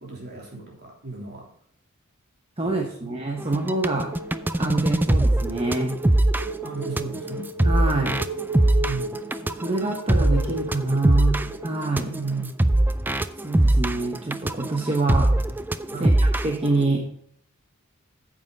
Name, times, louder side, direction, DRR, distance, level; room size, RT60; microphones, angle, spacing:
voice 1, 0.0-1.4 2.6-3.1 6.6-7.5 8.8-9.1 12.1-12.5 15.9-16.2, right 3 dB, 50° right, -1 dB, 3.2 m, -34 dB
voice 2, 2.6-4.2 4.6-6.0 7.6-8.3 9.6-12.1 13.4-15.4 16.0-17.1, right 2 dB, 25° right, 2 dB, 0.9 m, -26 dB
sound 1, 3.4-16.7, right 1 dB, 10° right, 0.3 m, -22 dB
sound 2, 3.9-12.3, right 1 dB, 70° right, 1.9 m, -37 dB
9.3 x 7.6 x 3.9 m, 0.64 s
head